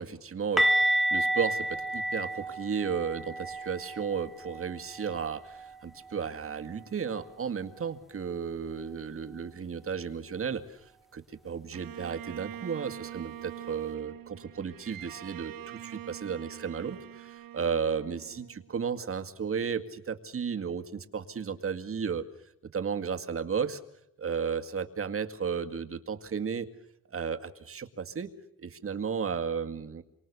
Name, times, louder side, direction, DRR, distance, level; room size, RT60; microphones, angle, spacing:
voice 1, 0.0-22.2 22.7-23.8 24.2-26.7 27.1-28.3 28.6-30.0, right 6 dB, 40° right, 7 dB, 2.1 m, -34 dB
sound 1, 0.6-6.3 6.6-6.9 7.2-7.4 10.6-10.7, right 1 dB, ahead, 1.6 m, -31 dB
Bowed string instrument, 11.7-19.0, right 12 dB, 80° right, 1.1 m, -44 dB
29.0 x 24.5 x 6.9 m, 0.81 s
wide cardioid pair, 160°, 33 cm